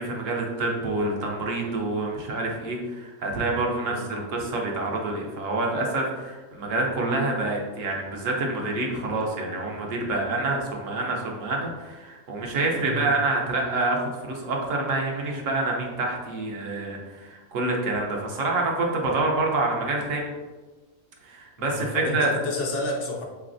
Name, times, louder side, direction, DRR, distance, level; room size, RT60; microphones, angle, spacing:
voice 1, 0.0-20.3 21.2-22.4, right 2 dB, 70° right, 0 dB, 1.0 m, -27 dB
voice 2, 21.6-23.2, left 2 dB, 65° left, 0 dB, 0.9 m, -30 dB
3.9 x 3.2 x 2.5 m, 1.3 s
omnidirectional pair, 1.4 m